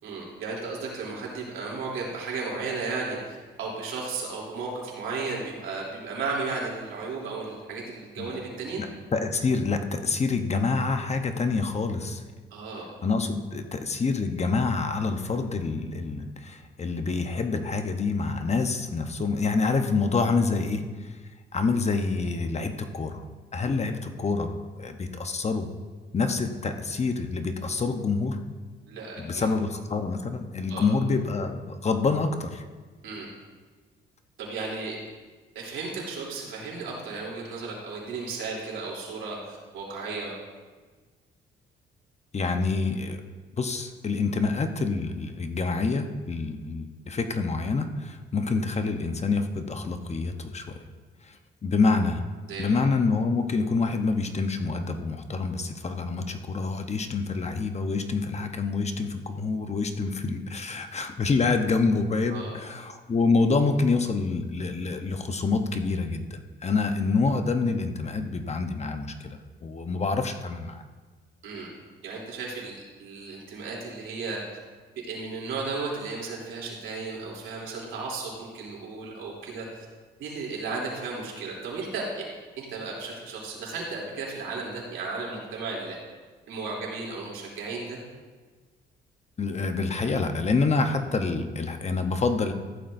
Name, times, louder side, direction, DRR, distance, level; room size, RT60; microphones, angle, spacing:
voice 1, 0.0-8.8 12.5-12.9 28.9-29.5 30.7-30.9 33.0-33.3 34.4-35.0 35.5-40.4 52.5-52.8 62.3-62.6 71.4-71.7 72.0-74.4 74.9-79.8 80.2-82.1 82.6-86.0 86.5-88.0, right 4 dB, 90° right, -3 dB, 3.2 m, -34 dB
voice 2, 9.1-12.2 13.0-21.1 21.5-23.2 23.5-25.7 26.1-28.4 29.2-32.6 42.3-43.2 43.6-50.9 51.3-51.4 51.6-52.2 52.6-70.8 89.4-92.5, left 4 dB, 35° left, 7 dB, 0.9 m, -27 dB
15.0 x 11.5 x 2.7 m, 1.4 s
cardioid pair, 90°, 20 cm